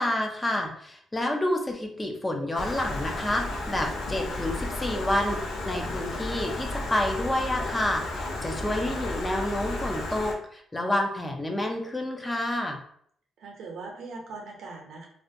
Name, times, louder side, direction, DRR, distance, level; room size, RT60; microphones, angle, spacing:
voice 1, 0.0-12.8, left 1 dB, 15° left, 2 dB, 0.4 m, -29 dB
Stream, 2.5-10.3, left 2 dB, 85° left, 0.5 m, -33 dB
voice 2, 13.4-15.1, right 3 dB, 75° right, 1 dB, 0.6 m, -41 dB
2.4 x 2.1 x 2.6 m, 0.65 s
cardioid pair, 90°, 0 cm